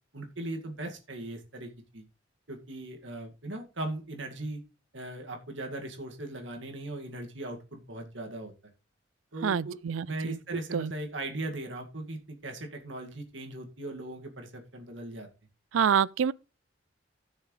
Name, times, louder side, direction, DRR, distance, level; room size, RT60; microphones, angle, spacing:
voice 1, 0.1-2.0 2.5-4.6 4.9-8.5 9.3-9.8 10.1-15.3, right 1 dB, 65° right, 2.1 m, -38 dB
voice 2, 9.4-10.4 10.7-10.9 15.7-16.3, right 7 dB, 80° right, 0.4 m, -27 dB
16.0 x 6.5 x 3.2 m
head